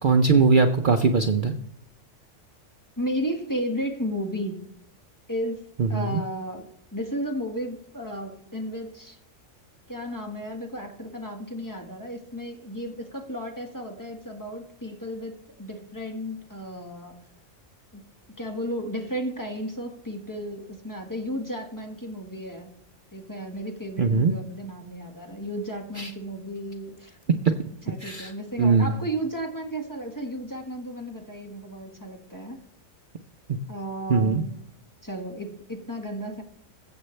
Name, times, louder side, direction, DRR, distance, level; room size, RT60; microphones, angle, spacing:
voice 1, 0.0-1.5 5.8-6.2 24.0-24.3 26.0-26.1 28.0-28.3 28.6-28.9 34.1-34.4, right 4 dB, 50° right, 5 dB, 0.7 m, -20 dB
voice 2, 3.0-4.7 5.3-9.2 9.9-17.2 17.9-18.1 18.4-22.7 23.1-27.2 27.8-32.6 33.7-34.5 35.0-36.4, equal, 15° left, 2 dB, 1.5 m, -34 dB
22.0 x 7.8 x 3.3 m, 0.79 s
omnidirectional pair, 1.3 m